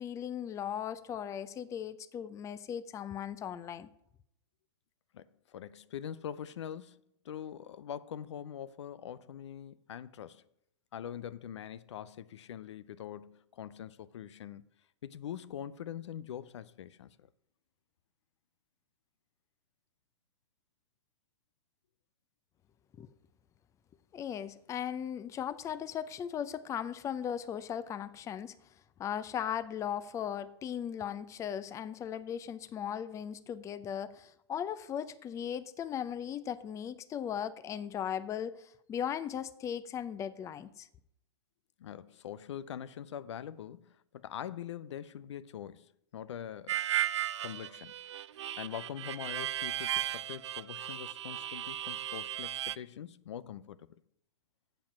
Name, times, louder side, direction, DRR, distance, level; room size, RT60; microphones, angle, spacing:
voice 1, 0.0-3.9 23.0-23.1 24.1-28.6 29.0-40.9, left 9 dB, 20° left, 0.5 m, -37 dB
voice 2, 5.1-7.0 7.2-10.4 10.9-14.6 15.0-17.3 41.8-46.8 47.4-47.9 48.6-53.9, left 9 dB, 75° left, 0.6 m, -43 dB
Harmonica, 46.7-52.8, right 12 dB, 80° right, 0.5 m, -35 dB
7.5 x 6.9 x 7.5 m
hypercardioid pair, 120°, 15 cm